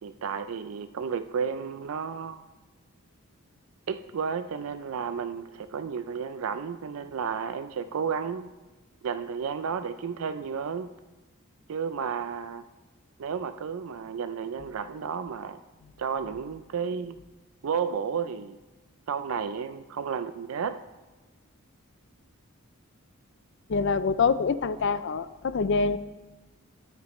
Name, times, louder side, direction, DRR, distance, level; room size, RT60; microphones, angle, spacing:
voice 1, 0.0-2.5 3.9-8.5 9.0-10.9 11.7-12.6 13.2-15.6 16.0-17.2 17.6-18.6 19.1-20.8, right 6 dB, 75° right, 11 dB, 0.4 m, -32 dB
voice 2, 23.7-26.0, left 5 dB, 55° left, 14 dB, 0.4 m, -25 dB
13.5 x 9.5 x 3.1 m, 1.2 s
head